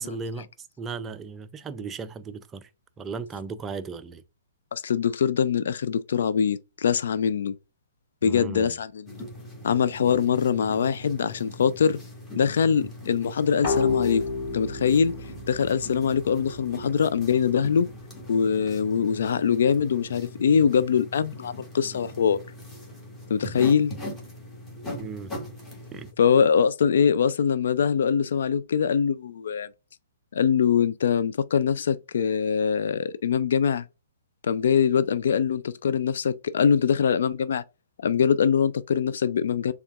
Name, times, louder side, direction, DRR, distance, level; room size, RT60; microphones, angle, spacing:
voice 1, 0.0-2.7 3.0-4.2 8.2-8.8 25.0-25.3 25.9-26.1, right 4 dB, 15° right, 0.4 m, -36 dB
voice 2, 4.7-7.5 8.2-9.2 9.6-12.0 12.4-14.2 14.5-15.2 15.5-17.9 18.3-22.4 23.3-23.9 26.2-29.7 30.3-33.8 34.4-37.6 38.0-39.7, left 7 dB, 60° left, 0.3 m, -23 dB
sound 1, 9.1-26.1, left 1 dB, 10° left, 1.4 m, -41 dB
sound 2, 13.6-17.1, left 4 dB, 35° left, 2.5 m, -31 dB
6.8 x 2.3 x 2.4 m
figure-of-eight pair, 120°, 0 cm